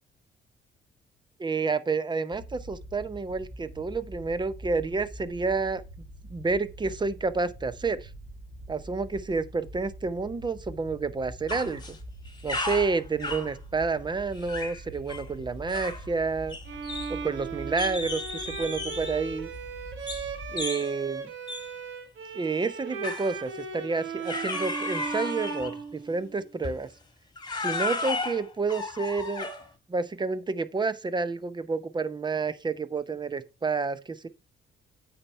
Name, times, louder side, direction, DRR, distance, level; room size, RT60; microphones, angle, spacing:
voice 1, 1.4-5.8 6.3-8.1 8.7-12.0 12.4-16.6 17.1-18.2 18.5-19.5 20.5-21.3 22.3-26.9 27.6-29.5 29.9-34.3, right 4 dB, 20° right, 0.7 m, -29 dB
sound 1, 2.3-20.7, right 1 dB, 40° right, 2.5 m, -44 dB
sound 2, 11.5-12.0 12.3-13.5 14.4-14.8 15.1-15.3 15.7-16.1 16.5-17.4 17.8-19.2 20.1-20.3 20.6-20.9 21.5-21.7 23.0-23.4 24.3-25.8 26.6-26.8 27.4-29.7, left 3 dB, 20° left, 1.6 m, -34 dB
Bowed string instrument, 16.7-26.5, right 5 dB, 80° right, 1.5 m, -37 dB
8.7 x 4.3 x 4.4 m
cardioid pair, 90°, 20 cm